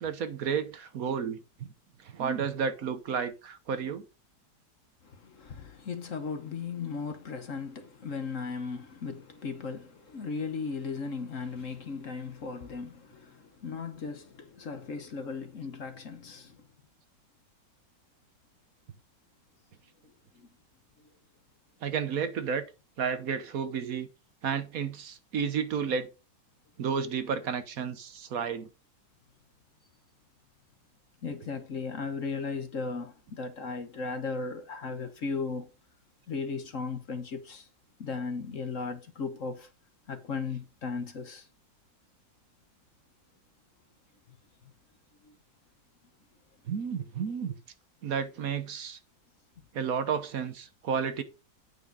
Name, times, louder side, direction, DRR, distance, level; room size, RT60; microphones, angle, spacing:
voice 1, 0.0-1.7 2.0-4.0 21.8-22.6 23.0-24.1 24.4-26.1 26.8-28.7 46.7-47.5 48.0-49.0 49.7-51.2, right 6 dB, 55° right, 1.3 m, -32 dB
voice 2, 5.0-16.7 20.3-20.5 31.2-35.7 36.3-37.7 38.0-39.7 40.1-41.5 45.2-45.3, left 4 dB, 50° left, 1.3 m, -36 dB
8.6 x 6.8 x 3.9 m
omnidirectional pair, 2.0 m